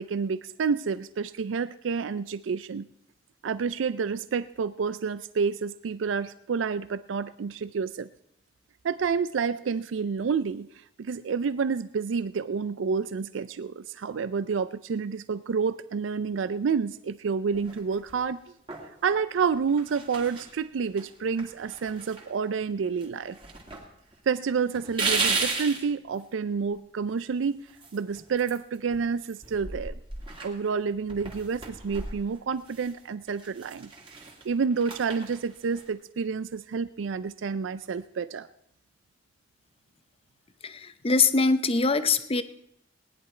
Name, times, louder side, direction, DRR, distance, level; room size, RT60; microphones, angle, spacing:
voice 1, 0.0-2.9 3.4-8.1 8.8-10.7 11.0-18.4 19.0-23.4 23.7-23.8 24.3-27.6 27.9-29.9 30.4-33.9 34.4-38.5, right 5 dB, 90° right, 15 dB, 0.4 m, -29 dB
sound 1, 17.5-18.2 18.7-19.2 19.7-20.5 21.0-21.1 21.4-22.7 23.0-23.8 24.1-24.2 24.7-25.8 27.7-29.1 29.4-32.9 33.3-35.9, right 4 dB, 30° right, 2.4 m, -35 dB
voice 2, 40.6-42.4, left 4 dB, 30° left, 12 dB, 0.7 m, -23 dB
19.0 x 10.5 x 4.4 m, 0.73 s
head